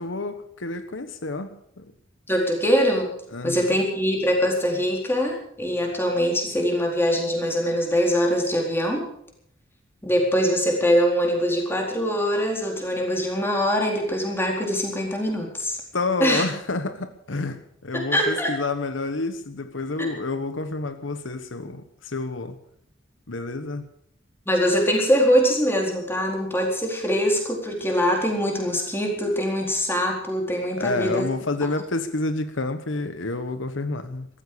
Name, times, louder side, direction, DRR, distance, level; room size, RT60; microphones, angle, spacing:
voice 1, 0.0-1.9 3.3-3.8 15.9-22.6 23.3-23.9 30.8-34.3, left 2 dB, 80° left, 1.2 m, -29 dB
voice 2, 2.3-3.1 3.4-9.1 10.0-15.8 16.2-16.4 17.9-18.5 20.0-20.1 24.5-31.3, equal, 10° left, 4.2 m, -23 dB
15.0 x 13.5 x 6.8 m
head